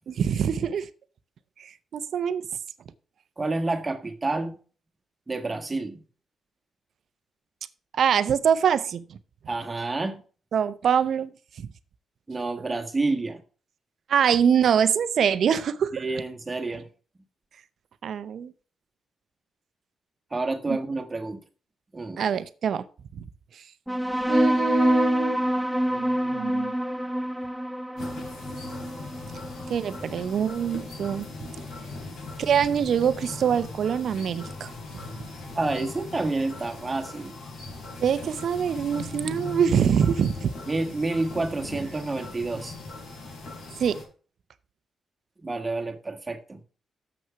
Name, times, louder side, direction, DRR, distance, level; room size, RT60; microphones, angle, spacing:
voice 1, 0.1-0.9 1.6-2.5 8.0-9.0 10.5-11.3 11.6-11.7 12.6-12.7 14.1-16.0 18.0-18.5 20.7-20.8 22.2-22.8 23.1-23.2 24.3-25.4 25.9-26.7 29.7-31.3 32.4-34.7 38.0-40.5 43.8-44.0, right 8 dB, 65° right, 0.7 m, -24 dB
voice 2, 3.4-4.5 5.3-6.0 9.5-10.2 12.3-13.4 15.9-16.9 20.3-21.4 21.9-22.3 31.7-32.1 35.5-37.3 40.7-42.7 45.4-46.6, right 3 dB, 25° right, 1.6 m, -29 dB
sound 1, 23.9-30.8, equal, 5° right, 0.7 m, -26 dB
sound 2, 28.0-44.0, left 3 dB, 75° left, 4.1 m, -39 dB
7.1 x 6.3 x 5.7 m
cardioid pair, 80°, 0 cm